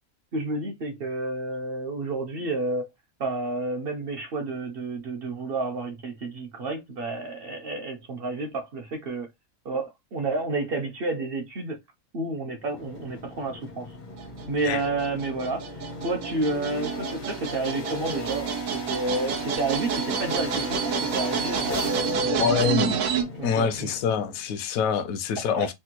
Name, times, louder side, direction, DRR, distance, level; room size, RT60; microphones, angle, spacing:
voice 1, 0.3-2.9 3.2-9.3 9.6-11.8 12.1-13.9 14.5-15.6 16.0-23.0 23.4-23.9 25.5-25.7, right 2 dB, 55° right, 0.7 m, -30 dB
sound 1, 12.6-24.4, left 1 dB, 50° left, 0.6 m, -37 dB
sound 2, 14.2-23.2, right 7 dB, 80° right, 1.1 m, -30 dB
voice 2, 22.3-23.0 23.4-25.7, left 6 dB, 80° left, 1.0 m, -25 dB
3.4 x 2.1 x 2.8 m
omnidirectional pair, 1.5 m